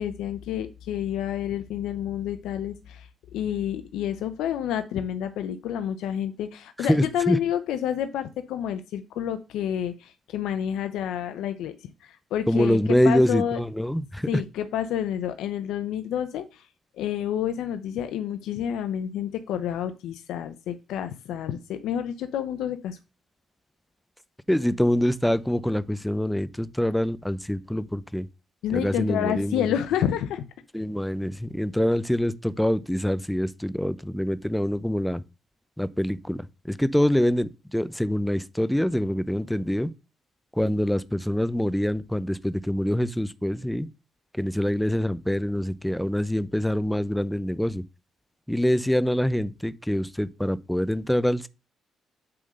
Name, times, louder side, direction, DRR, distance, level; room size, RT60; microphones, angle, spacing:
voice 1, 0.0-11.8 12.0-12.8 13.0-13.6 14.3-16.7 17.0-23.0 28.6-30.4, left 10 dB, 85° left, 0.7 m, -29 dB
voice 2, 6.8-7.4 12.5-14.4 24.5-28.3 28.7-29.7 30.7-35.2 35.8-39.9 40.5-43.9 44.4-47.8 48.5-51.5, equal, 5° left, 0.5 m, -25 dB
8.6 x 3.8 x 6.4 m
cardioid pair, 90°, 0 cm